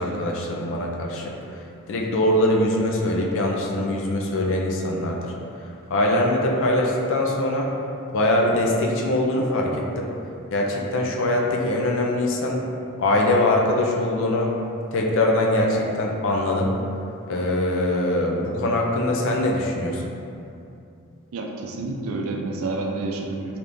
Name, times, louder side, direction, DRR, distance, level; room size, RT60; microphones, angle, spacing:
voice 1, 0.0-5.3 5.9-7.7 8.1-10.1 10.5-12.6 13.0-14.5 14.9-16.7 17.3-20.0, left 1 dB, 55° left, -1 dB, 0.4 m, -22 dB
voice 2, 21.3-23.6, right 3 dB, 65° right, 1 dB, 0.4 m, -29 dB
3.4 x 2.8 x 2.5 m, 2.6 s
head